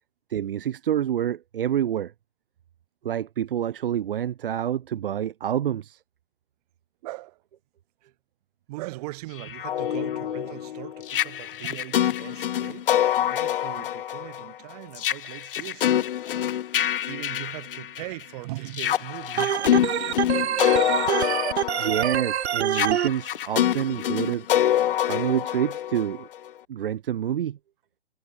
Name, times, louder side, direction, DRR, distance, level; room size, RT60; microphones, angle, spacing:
voice 1, 0.3-2.1 3.0-6.0 21.8-24.5 25.1-26.3 26.7-27.6, right 10 dB, 55° right, 1.4 m, -27 dB
voice 2, 7.0-7.4 8.0-8.1 8.7-16.6 17.0-20.5, right 21 dB, 35° right, 7.1 m, -40 dB
sound 1, 9.4-18.2 18.7-26.5, left 11 dB, 55° left, 0.5 m, -26 dB
Organ, 19.4-23.1, right 10 dB, 70° right, 0.6 m, -25 dB
hypercardioid pair, 140°, 34 cm